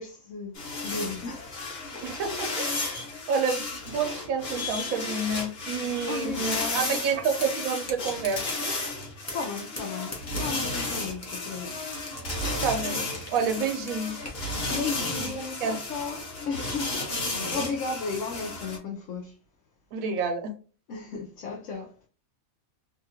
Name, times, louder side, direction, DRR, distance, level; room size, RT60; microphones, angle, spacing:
voice 1, 0.0-2.1 6.1-7.0 9.3-11.9 14.7-19.3 20.9-21.9, left 4 dB, 70° left, 0.9 m, -35 dB
sound 1, 0.6-18.8, left 2 dB, 50° left, 1.2 m, -33 dB
voice 2, 2.0-3.0 3.3-8.7 12.6-13.0 13.3-14.2 15.2-15.8 19.9-20.5, right 5 dB, 80° right, 1.1 m, -29 dB
sound 2, 7.4-7.5 7.8-8.6 9.0-9.5 9.8-11.4 11.7-13.4 13.6-14.9, left 1 dB, 15° left, 0.6 m, -40 dB
2.8 x 2.3 x 2.7 m
omnidirectional pair, 1.4 m